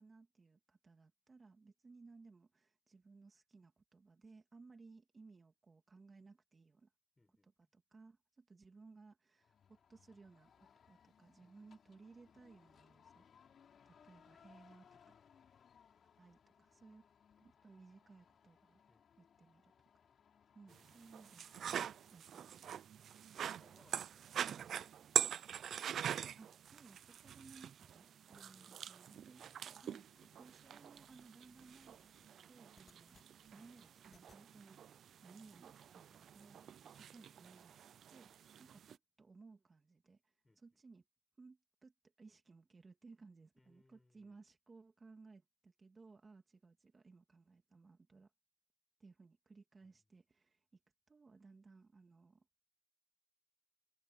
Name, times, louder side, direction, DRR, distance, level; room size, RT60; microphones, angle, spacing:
voice 1, 0.0-6.9 7.3-13.2 13.9-15.2 16.2-17.0 17.4-18.8 19.2-20.0 20.5-22.8 26.4-30.0 30.4-35.8 36.1-41.0 41.4-48.3 49.0-50.8 51.1-52.5, right 4 dB, 35° right, 2.5 m, -61 dB
voice 2, 7.2-7.7 11.4-11.8 18.9-19.1 20.7-21.0 23.6-25.4 28.3-29.8 40.4-40.8 43.6-44.4 49.8-50.0, left 2 dB, 15° left, 4.9 m, -72 dB
sound 1, 9.4-22.2, left 7 dB, 65° left, 7.1 m, -67 dB
sound 2, 20.7-39.0, right 9 dB, 75° right, 0.6 m, -44 dB
sound 3, 29.4-34.4, left 5 dB, 40° left, 4.0 m, -72 dB
cardioid pair, 110°, 0 cm